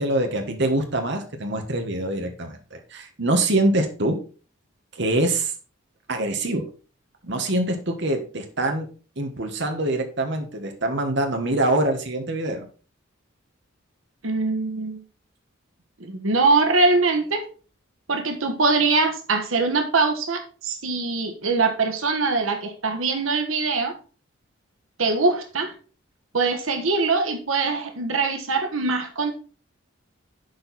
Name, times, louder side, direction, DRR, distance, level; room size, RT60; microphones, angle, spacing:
voice 1, 0.0-4.2 4.9-5.5 6.1-6.6 7.2-8.9 9.2-12.7, right 1 dB, 60° right, 4 dB, 1.4 m, -24 dB
voice 2, 14.2-15.0 16.0-17.4 18.1-23.9 25.0-25.7 26.3-29.3, right 3 dB, 85° right, 5 dB, 1.4 m, -22 dB
11.0 x 4.7 x 4.1 m, 0.37 s
head